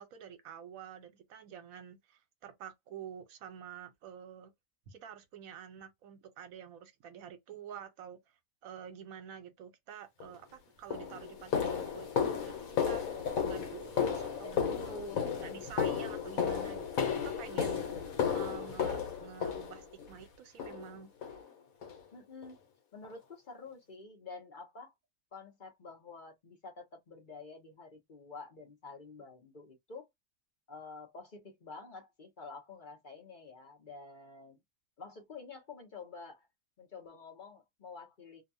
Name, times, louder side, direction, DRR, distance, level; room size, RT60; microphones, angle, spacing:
voice 1, 0.0-4.5 4.9-8.2 8.6-15.1 15.4-17.9 18.3-21.1, right 8 dB, 80° right, 1.1 m, -49 dB
sound 1, 10.2-10.4 10.9-20.1 20.6-20.9 21.2-21.4 21.8-22.0 22.4-22.5 23.0-23.1, left 7 dB, 80° left, 1.2 m, -34 dB
voice 2, 14.4-15.8 17.9-18.2 22.1-22.6 22.9-24.9 25.3-30.1 30.7-34.6 35.0-36.5 36.8-38.4, left 3 dB, 40° left, 0.8 m, -49 dB
2.7 x 2.2 x 2.6 m
omnidirectional pair, 1.5 m